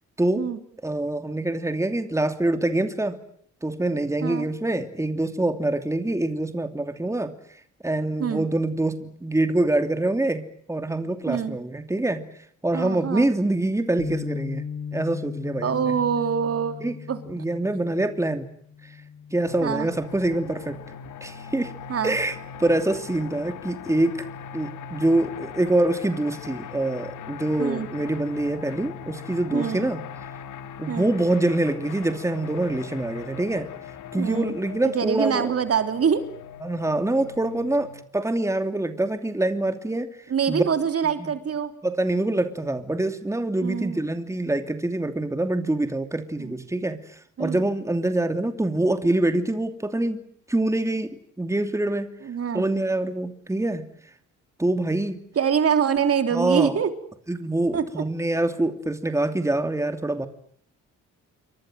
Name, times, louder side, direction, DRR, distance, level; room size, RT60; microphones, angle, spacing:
voice 1, 0.8-3.2 3.6-7.3 7.8-12.2 12.6-14.6 14.9-15.8 16.8-17.0 17.2-18.5 18.8-19.0 19.3-20.8 21.2-21.7 22.0-24.2 24.5-30.0 30.8-33.7 34.1-35.5 36.6-40.2 40.5-40.6 41.8-50.2 50.5-51.1 51.4-52.1 52.5-53.9 54.6-55.2 56.3-56.8 57.3-60.3, right 2 dB, 10° right, 8 dB, 2.9 m, -25 dB
voice 2, 11.3-11.6 12.7-13.3 15.6-16.8 17.1-17.2 19.6-19.9 21.9-22.2 27.6-27.9 29.5-29.9 30.9-31.1 34.2-34.6 34.8-36.2 40.3-41.7 43.6-44.0 46.4-46.5 47.4-47.7 52.2-52.7 55.3-56.9 57.7-57.8, right 7 dB, 50° right, 8 dB, 3.5 m, -25 dB
Bass guitar, 14.0-20.2, left 7 dB, 50° left, 1.7 m, -37 dB
sound 1, 19.5-38.0, left 7 dB, 75° left, 2.4 m, -40 dB
29.0 x 24.0 x 7.7 m, 0.65 s
cardioid pair, 90°, 30 cm